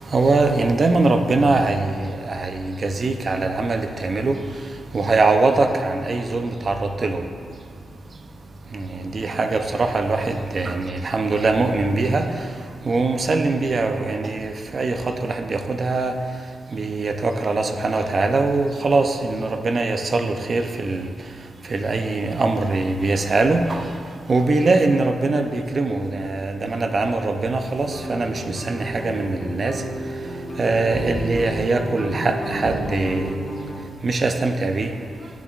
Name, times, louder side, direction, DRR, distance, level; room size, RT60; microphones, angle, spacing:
voice 1, 0.0-4.4 4.9-7.2 8.7-12.5 12.8-16.1 16.7-21.1 21.6-23.9 24.3-29.8 30.6-33.4 34.0-34.9, right 3 dB, 40° right, 6 dB, 0.5 m, -22 dB
sound 1, 27.8-33.8, equal, 30° left, 1.2 m, -31 dB
12.0 x 7.0 x 2.4 m, 2.3 s
wide cardioid pair, 135°, 0 cm